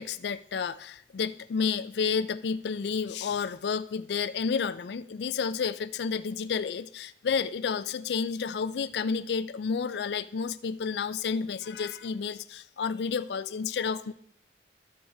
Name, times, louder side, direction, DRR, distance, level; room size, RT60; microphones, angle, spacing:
voice 1, 0.0-14.1, left 6 dB, 65° left, 15 dB, 0.4 m, -31 dB
13.5 x 6.4 x 3.4 m, 0.71 s
head